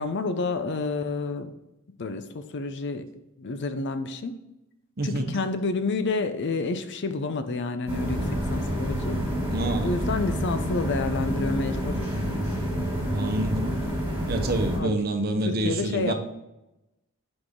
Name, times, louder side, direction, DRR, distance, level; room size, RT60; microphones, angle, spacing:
voice 1, 0.0-1.5 2.0-3.1 3.4-4.4 5.0-9.2 9.8-12.1 14.7-14.9 15.5-16.1, left 3 dB, 55° left, 9 dB, 0.5 m, -29 dB
voice 2, 5.0-5.4 9.5-10.0 13.1-13.8 14.3-16.1, right 1 dB, 45° right, 5 dB, 0.9 m, -27 dB
sound 1, 7.9-14.8, equal, 15° right, 2.4 m, -28 dB
6.1 x 4.9 x 3.7 m, 0.94 s
head